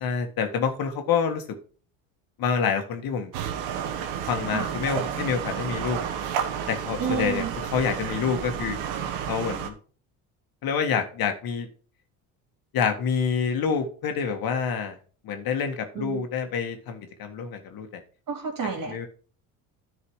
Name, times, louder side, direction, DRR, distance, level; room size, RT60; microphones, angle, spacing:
voice 1, 0.0-1.6 2.4-3.3 4.3-6.0 6.7-8.8 9.3-9.7 10.6-11.7 12.7-15.0 15.2-18.0 18.9-19.1, left 6 dB, 60° left, 6 dB, 1.8 m, -27 dB
sound 1, 3.3-9.7, right 8 dB, 85° right, 1.3 m, -31 dB
voice 2, 7.0-7.5 16.0-16.2 18.3-19.1, right 5 dB, 55° right, 2 dB, 3.4 m, -30 dB
10.0 x 4.8 x 4.8 m, 0.41 s
supercardioid pair, 80°, 39 cm